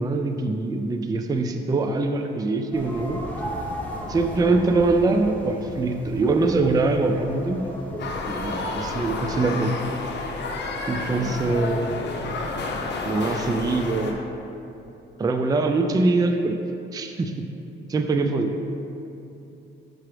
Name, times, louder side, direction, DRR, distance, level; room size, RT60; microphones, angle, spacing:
voice 1, 0.0-3.2 4.1-7.6 8.2-9.7 10.9-11.9 13.1-14.2 15.2-16.6 16.9-17.4 17.9-18.6, right 3 dB, 20° right, 6 dB, 0.4 m, -23 dB
sound 1, 2.7-9.4, equal, 5° left, 0.9 m, -35 dB
sound 2, 8.0-14.1, left 3 dB, 60° left, 0.7 m, -30 dB
voice 2, 11.0-13.0, right 1 dB, 80° right, 0 dB, 1.0 m, -41 dB
6.1 x 5.7 x 3.3 m, 2.8 s
cardioid pair, 90°, 20 cm